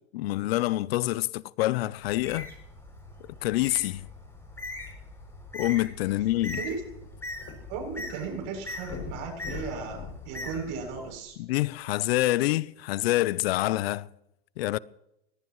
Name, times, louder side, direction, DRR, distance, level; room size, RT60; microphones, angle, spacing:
voice 1, 0.1-2.5 3.4-4.1 5.5-6.6 11.4-14.1 14.6-14.8, left 17 dB, 70° left, 0.7 m, -26 dB
Bird, 2.1-11.1, left 2 dB, 10° left, 7.3 m, -41 dB
sound 1, 6.6-8.0 8.3-8.4 8.8-11.4 12.1-12.2, left 6 dB, 45° left, 6.5 m, -42 dB
voice 2, 6.6-7.0 7.7-11.4, right 5 dB, 55° right, 7.7 m, -36 dB
22.5 x 19.0 x 3.2 m
hypercardioid pair, 110°, 32 cm